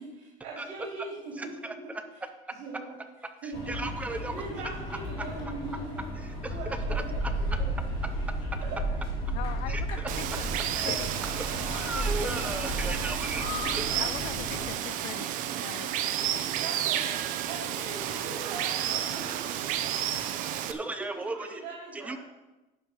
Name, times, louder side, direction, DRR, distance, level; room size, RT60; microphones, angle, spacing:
voice 1, 0.0-1.9 2.6-3.0 3.4-3.8 4.3-6.0 6.5-7.7 8.6-8.8 13.0-13.4 16.6-20.0 20.7-22.2, right 3 dB, 90° right, -4 dB, 3.2 m, -41 dB
voice 2, 1.4-2.0 3.4-4.4 4.9-5.0 6.2-6.6 6.9-7.3 9.7-10.1 10.7-10.9 11.4-13.5 13.8-13.9 20.7-21.6 21.9-22.2, right 2 dB, 10° right, 7 dB, 0.5 m, -36 dB
sound 1, 3.5-14.7, right 1 dB, 30° left, 2.9 m, -33 dB
voice 3, 9.3-11.1 11.6-12.4 13.1-13.2 14.0-15.3 15.6-15.9, left 15 dB, 60° left, 14 dB, 0.4 m, -41 dB
Water, 10.1-20.7, right 11 dB, 50° right, 0.6 m, -31 dB
10.5 x 5.9 x 5.5 m, 1.1 s
cardioid pair, 180°, 18 cm